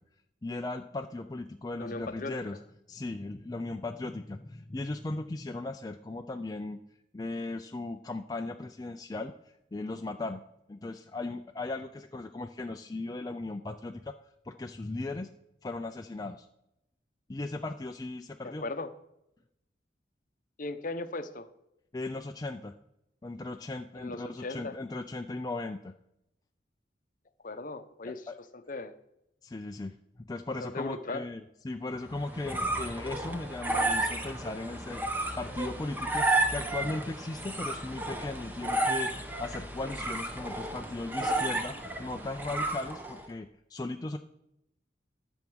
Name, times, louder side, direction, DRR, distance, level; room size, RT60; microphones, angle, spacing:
voice 1, 0.4-2.6 2.9-6.8 7.1-9.3 9.7-10.4 10.7-14.1 14.5-15.3 15.6-16.5 17.3-18.6 21.9-22.7 23.2-25.9 27.5-27.6 28.0-28.4 29.4-30.0 30.3-35.0 35.4-44.2, left 2 dB, 20° left, 5 dB, 0.4 m, -37 dB
voice 2, 1.8-2.3 18.4-18.9 20.6-21.5 24.0-24.8 27.4-28.2 28.7-28.9 30.6-31.2, left 2 dB, 45° left, 11 dB, 0.8 m, -37 dB
sound 1, 32.1-43.3, right 2 dB, 10° right, 1.0 m, -32 dB
12.0 x 7.1 x 6.2 m, 0.84 s
head